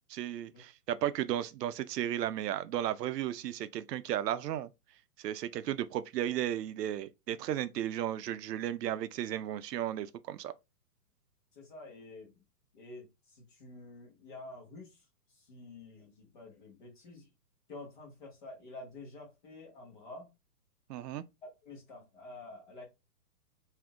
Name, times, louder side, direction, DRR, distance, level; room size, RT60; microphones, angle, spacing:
voice 1, 0.1-4.7 5.2-10.5 20.9-21.2, right 11 dB, 85° right, 0.6 m, -34 dB
voice 2, 11.5-12.4 12.7-15.0 15.5-17.3 17.7-20.3 21.4-22.8, left 2 dB, 30° left, 1.1 m, -49 dB
3.5 x 2.7 x 2.3 m
hypercardioid pair, 175°, 47 cm